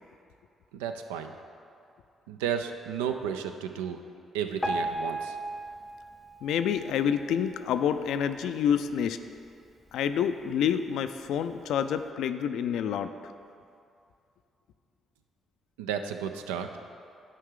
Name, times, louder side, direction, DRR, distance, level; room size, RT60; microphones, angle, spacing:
voice 1, 0.7-1.3 2.3-4.0 4.3-5.4 15.8-16.7, right 8 dB, 85° right, 7 dB, 0.3 m, -33 dB
Piano, 4.6-7.7 8.2-8.4 8.7-8.8 9.5-9.6 10.2-10.3, right 1 dB, 15° left, 0.7 m, -35 dB
voice 2, 6.4-9.2 9.9-13.1, left 8 dB, 70° left, 10 dB, 0.3 m, -28 dB
9.9 x 4.7 x 3.7 m, 2.5 s
hypercardioid pair, 45°, 0 cm